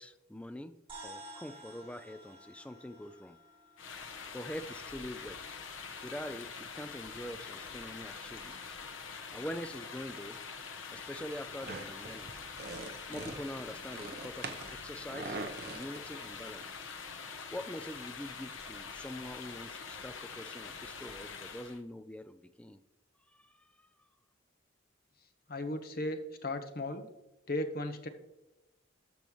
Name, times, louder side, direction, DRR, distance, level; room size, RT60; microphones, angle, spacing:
voice 1, 0.0-3.4 4.3-5.6 6.0-8.8 9.1-12.3 13.1-15.4 15.6-16.9 17.5-22.8 23.3-23.9, left 1 dB, 5° left, 11 dB, 0.3 m, -44 dB
sound 1, 0.9-5.5, right 1 dB, 30° right, 2.0 m, -52 dB
sound 2, 3.8-21.8, left 5 dB, 90° left, 0.9 m, -45 dB
sound 3, 11.6-16.6, right 3 dB, 55° right, 0.7 m, -44 dB
voice 2, 25.5-27.1 27.5-28.1, left 1 dB, 50° left, 8 dB, 0.9 m, -36 dB
13.5 x 5.3 x 3.1 m, 0.98 s
head